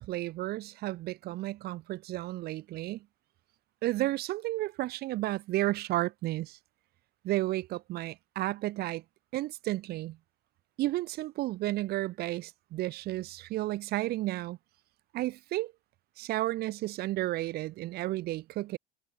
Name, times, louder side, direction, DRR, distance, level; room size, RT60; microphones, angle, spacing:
voice 1, 0.0-3.1 3.8-6.6 7.2-9.0 9.3-10.2 10.8-14.6 15.1-15.7 16.2-18.8, right 16 dB, 60° right, 5.4 m, -32 dB
cardioid pair, 130°, 19 cm